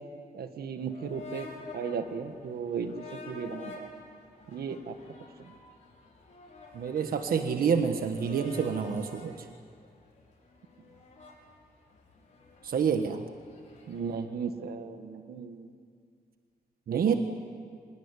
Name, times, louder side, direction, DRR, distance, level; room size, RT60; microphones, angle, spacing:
voice 1, 0.3-1.5 1.7-3.9 4.5-5.0 5.4-5.5 13.9-15.7 16.9-17.1, right 6 dB, 90° right, 8 dB, 1.6 m, -36 dB
sound 1, 0.8-14.1, left 3 dB, 50° left, 5.9 m, -49 dB
voice 2, 6.7-9.3 12.6-13.2 16.9-17.1, right 6 dB, 70° right, 6 dB, 1.4 m, -27 dB
25.0 x 21.0 x 9.9 m, 2.2 s
wide cardioid pair, 165°, 16 cm